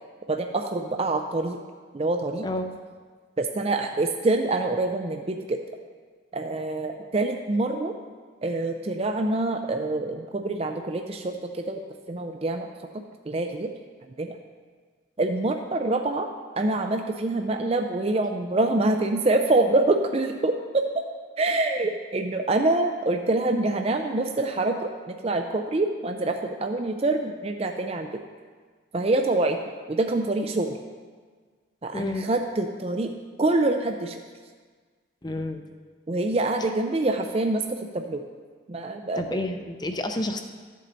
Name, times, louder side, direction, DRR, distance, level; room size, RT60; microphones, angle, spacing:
voice 1, 0.3-1.6 1.9-2.5 3.4-5.6 6.3-7.9 8.4-11.8 12.1-12.7 13.3-13.7 14.2-14.3 15.2-20.8 21.4-28.2 28.9-29.6 29.9-30.8 31.8-33.1 33.4-34.2 36.1-38.2 38.7-39.4, right 2 dB, 30° right, 5 dB, 0.4 m, -25 dB
voice 2, 31.9-32.3 35.2-35.6 39.2-40.4, left 1 dB, 20° left, 6 dB, 0.6 m, -30 dB
13.5 x 7.5 x 4.0 m, 1.5 s
head